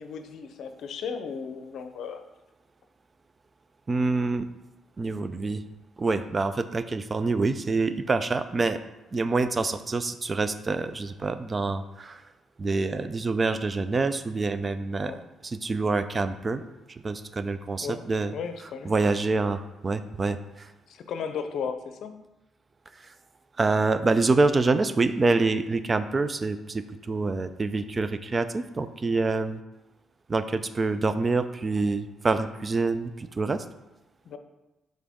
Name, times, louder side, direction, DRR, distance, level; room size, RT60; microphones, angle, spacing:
voice 1, 0.0-2.2 15.0-15.2 17.8-18.0 18.3-18.9 20.9-22.2 34.3-34.4, left 6 dB, 70° left, 8 dB, 0.6 m, -35 dB
voice 2, 3.9-4.4 5.0-5.6 6.0-8.8 9.1-12.2 12.6-16.6 16.9-18.3 18.9-20.7 23.6-29.6 30.3-33.6, right 3 dB, 30° right, 12 dB, 0.4 m, -26 dB
7.4 x 3.9 x 3.5 m, 1.0 s
cardioid pair, 90°, 0 cm